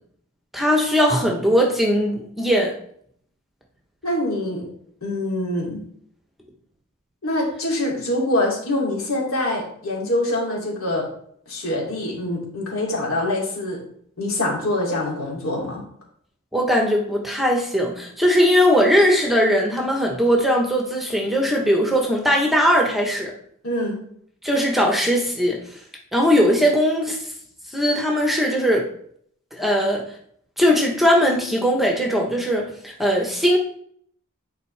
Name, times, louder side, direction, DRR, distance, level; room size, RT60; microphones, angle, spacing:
voice 1, 0.5-2.7 16.5-23.3 24.4-25.6 26.1-27.2 27.7-28.9 29.5-30.0 30.6-33.6, equal, ahead, 0 dB, 1.0 m, -19 dB
voice 2, 4.0-4.7 5.0-5.8 7.2-11.1 11.5-13.8 14.2-15.8 23.6-24.0, left 1 dB, 75° left, -3 dB, 2.8 m, -24 dB
9.9 x 4.6 x 3.3 m, 0.64 s
head